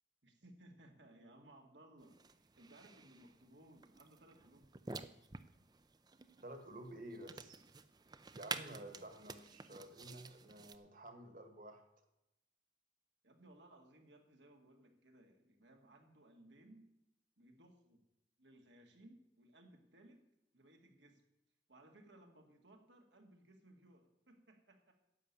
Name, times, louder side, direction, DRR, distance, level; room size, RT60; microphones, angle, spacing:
voice 1, 0.2-4.7 13.2-16.9 17.4-18.0 18.4-20.2 20.5-21.2 21.7-24.9, right 1 dB, 85° right, 3 dB, 2.1 m, -62 dB
sound 1, 2.0-10.8, right 4 dB, 20° right, 0.5 m, -51 dB
voice 2, 6.4-7.6 8.3-11.8, right 1 dB, 45° right, 6 dB, 1.8 m, -52 dB
10.5 x 6.9 x 8.7 m, 0.87 s
head